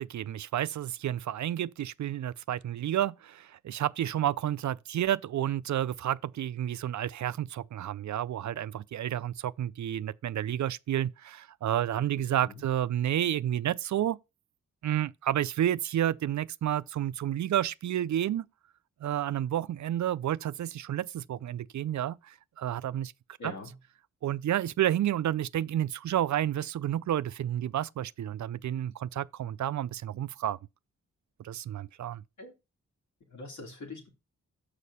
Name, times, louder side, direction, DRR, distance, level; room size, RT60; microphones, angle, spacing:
voice 1, 0.0-14.2 14.8-18.5 19.0-23.1 23.4-23.5 24.2-30.6 31.4-32.2, right 11 dB, 70° right, 0.5 m, -30 dB
voice 2, 12.0-12.6 23.4-23.7 32.4-32.5 33.3-34.1, left 2 dB, 70° left, 3.0 m, -43 dB
6.6 x 5.1 x 5.5 m
cardioid pair, 65°, 30 cm